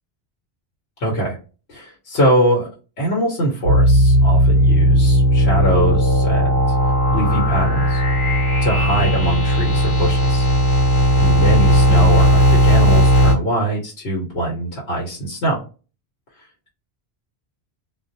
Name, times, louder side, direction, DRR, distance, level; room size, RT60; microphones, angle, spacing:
voice 1, 1.0-1.4 1.7-2.7 3.0-6.6 7.1-8.0 8.6-10.5 11.2-15.6, right 1 dB, 90° left, -3 dB, 1.2 m, -22 dB
sound 1, 3.6-13.3, equal, 75° left, 1.0 m, -15 dB
2.4 x 2.0 x 2.6 m, 0.34 s
omnidirectional pair, 1.1 m